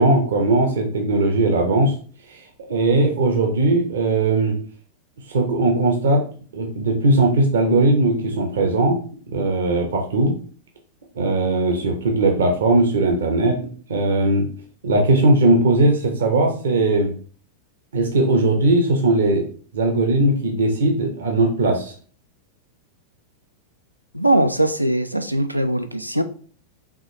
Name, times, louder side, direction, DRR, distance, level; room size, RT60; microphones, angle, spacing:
voice 1, 0.0-1.9 2.7-4.5 5.3-6.2 6.5-9.0 9.3-10.3 11.2-13.6 13.9-14.5 14.8-17.1 17.9-19.4 19.7-21.9, right 2 dB, 65° right, 3 dB, 0.8 m, -18 dB
voice 2, 24.1-26.2, right 1 dB, 90° right, 9 dB, 0.4 m, -20 dB
4.7 x 3.0 x 2.9 m, 0.44 s
figure-of-eight pair, 90°, 0 cm